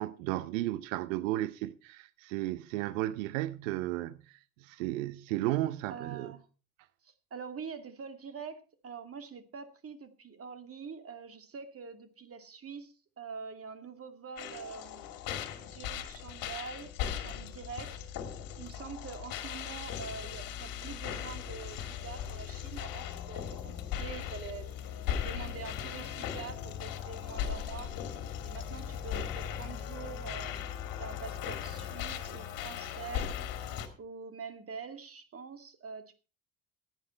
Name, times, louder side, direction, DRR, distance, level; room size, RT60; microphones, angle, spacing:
voice 1, 0.0-6.3, right 15 dB, 65° right, 0.8 m, -34 dB
voice 2, 5.9-6.4 7.0-15.0 15.6-17.9 18.6-24.7 25.2-27.9 28.4-30.7 31.0-33.3 33.6-33.7 34.0-36.2, right 5 dB, 35° right, 2.4 m, -45 dB
sound 1, 14.4-33.9, left 9 dB, 55° left, 2.3 m, -38 dB
16.5 x 9.2 x 4.4 m
figure-of-eight pair, 55°, 42 cm